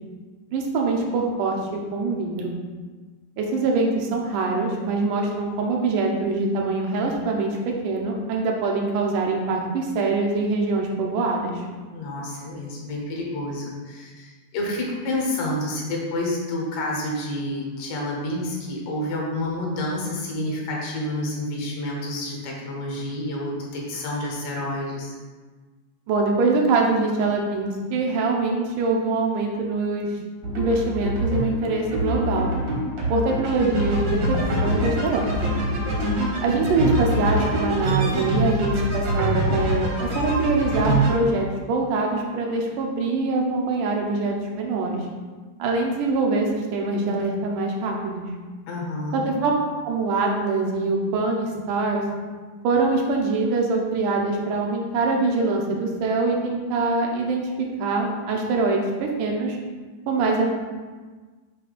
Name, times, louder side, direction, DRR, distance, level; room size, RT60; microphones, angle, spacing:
voice 1, 0.5-2.5 3.4-11.6 26.1-30.1 30.6-32.5 33.1-35.3 36.4-45.0 45.6-48.2 49.1-49.5 49.8-52.0 52.6-57.5 57.8-59.6 60.1-60.5, right 3 dB, 75° right, 0 dB, 2.3 m, -24 dB
voice 2, 11.9-25.1 48.7-49.2, left 1 dB, 75° left, -1 dB, 2.7 m, -29 dB
sound 1, 30.4-41.1, equal, 55° right, 1.3 m, -24 dB
7.8 x 2.8 x 5.0 m, 1.4 s
omnidirectional pair, 3.8 m